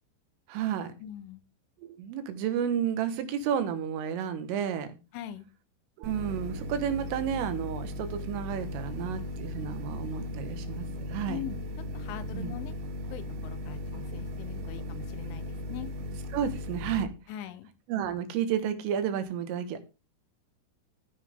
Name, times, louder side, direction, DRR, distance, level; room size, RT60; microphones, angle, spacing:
voice 1, 0.5-0.9 1.8-5.0 6.0-11.4 12.3-12.6 16.3-17.1 17.9-19.8, right 8 dB, 85° right, 4.2 m, -31 dB
voice 2, 1.0-1.4 5.1-5.5 11.3-12.8 13.1-15.9 17.3-17.7, left 10 dB, 80° left, 3.5 m, -42 dB
sound 1, 6.0-17.0, left 1 dB, 70° right, 3.9 m, -37 dB
15.5 x 10.0 x 3.7 m
omnidirectional pair, 5.6 m